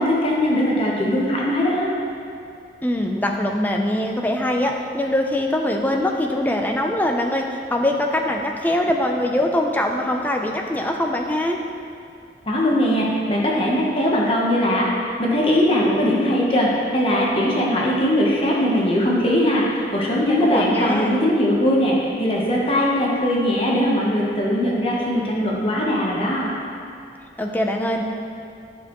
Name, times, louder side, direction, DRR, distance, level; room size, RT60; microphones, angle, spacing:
voice 1, 0.0-1.9 12.5-14.9 15.2-26.5, equal, 30° left, -4 dB, 1.0 m, -20 dB
voice 2, 2.8-11.6 20.4-21.2 27.4-28.0, left 1 dB, 10° left, 2 dB, 0.5 m, -22 dB
9.8 x 6.5 x 3.0 m, 2.6 s
head